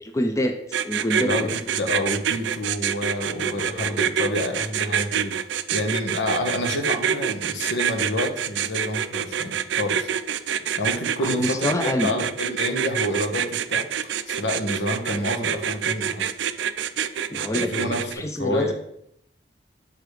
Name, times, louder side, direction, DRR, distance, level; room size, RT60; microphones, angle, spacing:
voice 1, 0.0-0.6 0.8-1.6 11.2-12.2 17.3-18.7, left 1 dB, 15° left, 5 dB, 0.5 m, -26 dB
sound 1, 0.7-18.1, right 8 dB, 85° right, 0.4 m, -26 dB
voice 2, 1.2-5.4 5.7-10.1 10.8-13.8 14.3-16.3 17.5-18.7, left 1 dB, 85° left, 3 dB, 1.1 m, -28 dB
6.6 x 3.8 x 4.8 m, 0.73 s
head